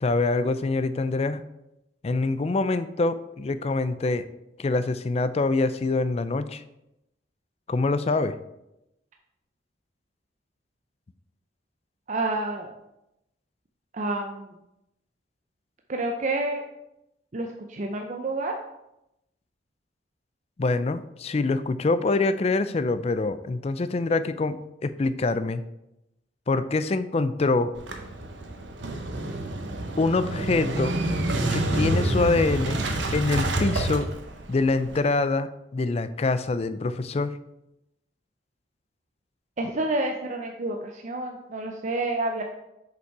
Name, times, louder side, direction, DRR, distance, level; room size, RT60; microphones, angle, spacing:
voice 1, 0.0-1.4 2.0-4.2 4.6-6.6 7.7-8.4 20.6-24.6 24.8-25.6 26.5-27.7 30.0-31.0 31.5-32.8 33.1-34.1 34.5-37.3, left 3 dB, 35° left, 13 dB, 0.4 m, -25 dB
voice 2, 12.1-12.8 13.9-14.5 15.9-16.6 17.3-18.5 39.6-42.4, right 2 dB, 40° right, 3 dB, 0.6 m, -29 dB
Motorcycle / Engine starting, 27.8-35.0, right 1 dB, 85° right, 1.0 m, -28 dB
6.7 x 5.3 x 4.6 m, 0.88 s
head